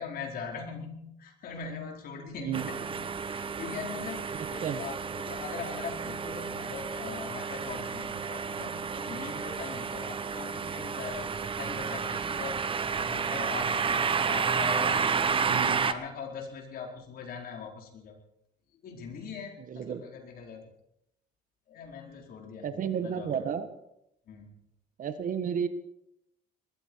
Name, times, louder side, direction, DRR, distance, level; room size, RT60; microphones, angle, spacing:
voice 1, 0.0-3.0 3.2-12.6 12.9-18.2 18.8-20.7 21.7-23.4 24.3-24.5, left 5 dB, 60° left, 1 dB, 4.6 m, -41 dB
voice 2, 2.4-2.7 4.6-4.8 15.4-15.9 19.7-20.0 22.6-23.7 25.0-25.7, right 8 dB, 50° right, 10 dB, 1.6 m, -32 dB
sound 1, 2.5-15.9, right 6 dB, 30° right, 1.0 m, -31 dB
21.0 x 13.5 x 4.8 m, 0.78 s
cardioid pair, 110°, 17 cm